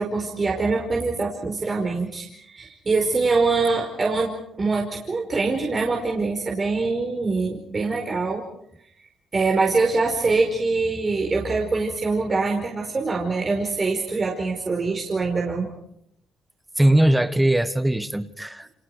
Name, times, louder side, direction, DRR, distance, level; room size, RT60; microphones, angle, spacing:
voice 1, 0.0-4.3 4.6-8.4 9.3-15.7, right 3 dB, 35° right, 5.1 m, -24 dB
voice 2, 16.8-18.7, right 1 dB, 10° right, 1.6 m, -20 dB
30.0 x 27.0 x 5.0 m
cardioid pair, 90°, 0 cm